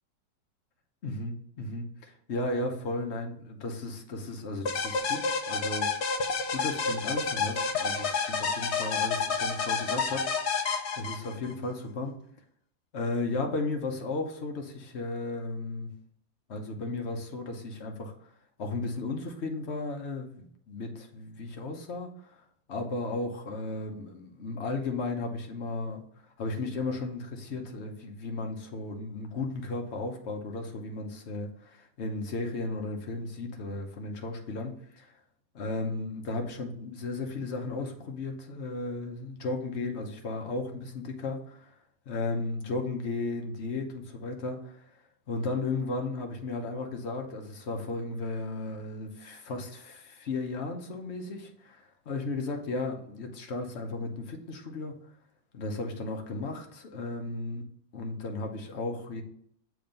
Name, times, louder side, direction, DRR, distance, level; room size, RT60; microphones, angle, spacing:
voice 1, 1.0-6.2 6.5-12.2 12.9-15.9 16.5-18.3 18.6-22.4 22.7-35.2 35.5-41.7 42.1-44.9 45.3-54.9 55.5-57.6 57.9-59.2, left 3 dB, 45° left, 3 dB, 0.9 m, -35 dB
sound 1, 4.7-11.5, left 5 dB, 75° left, 0.6 m, -29 dB
7.1 x 3.5 x 5.2 m, 0.68 s
omnidirectional pair, 2.0 m